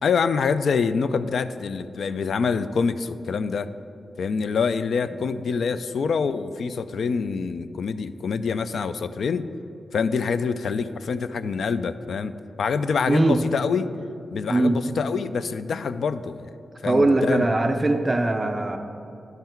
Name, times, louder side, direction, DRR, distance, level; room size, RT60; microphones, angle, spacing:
voice 1, 0.0-3.7 4.2-9.5 9.9-12.3 12.6-13.9 14.3-16.5 16.8-17.5, left 5 dB, 70° left, 13 dB, 0.3 m, -25 dB
voice 2, 13.1-13.4 14.5-14.8 16.8-18.8, right 2 dB, 20° right, 5 dB, 0.4 m, -21 dB
11.0 x 5.7 x 4.4 m, 2.8 s
wide cardioid pair, 155°, 0 cm